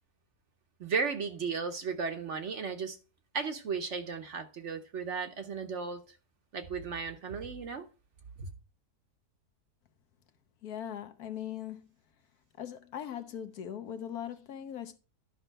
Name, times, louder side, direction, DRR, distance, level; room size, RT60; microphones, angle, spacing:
voice 1, 0.8-3.0 3.3-6.0 6.5-7.9 8.4-8.5, right 5 dB, 55° right, 1.0 m, -35 dB
voice 2, 10.6-11.8 12.6-15.0, left 9 dB, 70° left, 1.3 m, -40 dB
11.0 x 5.3 x 4.5 m
omnidirectional pair, 1.7 m